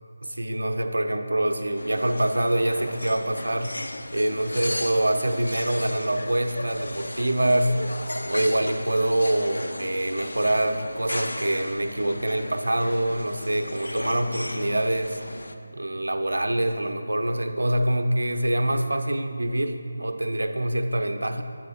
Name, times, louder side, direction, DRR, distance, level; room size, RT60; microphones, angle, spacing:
voice 1, 0.2-3.7 4.1-7.8 8.3-15.2 15.7-21.4, right 1 dB, 90° right, 7 dB, 0.6 m, -25 dB
sound 1, 1.8-15.5, left 1 dB, 85° left, 0.4 m, -35 dB
7.6 x 4.1 x 5.6 m, 2.6 s
figure-of-eight pair, 165°, 0 cm